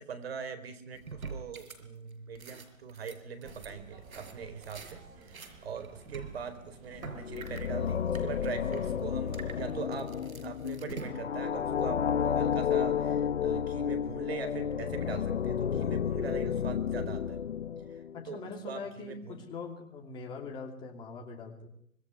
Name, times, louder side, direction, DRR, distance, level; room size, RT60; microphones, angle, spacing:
voice 1, 0.0-10.2 10.4-17.4 17.9-19.5, right 6 dB, 45° right, 12 dB, 4.3 m, -42 dB
sound 1, 0.9-1.8 2.1-5.0 5.2-7.7 8.1-8.3 8.5-8.9 9.3-11.5, right 4 dB, 85° right, 5.2 m, -46 dB
sound 2, 3.4-9.8, right 4 dB, 20° right, 3.8 m, -52 dB
sound 3, 7.0-18.2, left 8 dB, 55° left, 1.4 m, -31 dB
voice 2, 18.1-21.7, left 4 dB, 10° left, 2 dB, 2.8 m, -42 dB
25.5 x 22.0 x 9.7 m, 0.67 s
hypercardioid pair, 160°, 41 cm